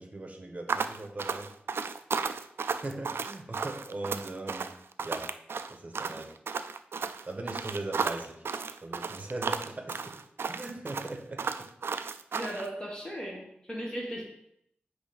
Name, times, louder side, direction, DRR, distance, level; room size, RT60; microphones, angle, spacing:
voice 1, 0.0-1.5 2.7-4.7 5.0-5.3 5.7-6.4 7.3-8.4 8.8-10.2 10.5-11.7, right 2 dB, 35° right, 4 dB, 1.2 m, -39 dB
sound 1, 0.7-12.7, right 5 dB, 75° right, 0.3 m, -34 dB
voice 2, 12.3-14.2, equal, 15° left, -2 dB, 1.9 m, -37 dB
8.0 x 3.3 x 5.2 m, 0.73 s
wide cardioid pair, 80°, 4 cm